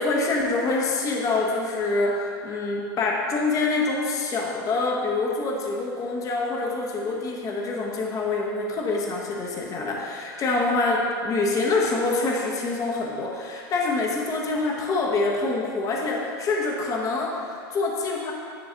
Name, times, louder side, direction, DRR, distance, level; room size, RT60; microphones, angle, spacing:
voice 1, 0.0-18.3, left 3 dB, 30° left, -1 dB, 0.8 m, -26 dB
9.5 x 3.2 x 3.9 m, 2.4 s
supercardioid pair, 125°, 12 cm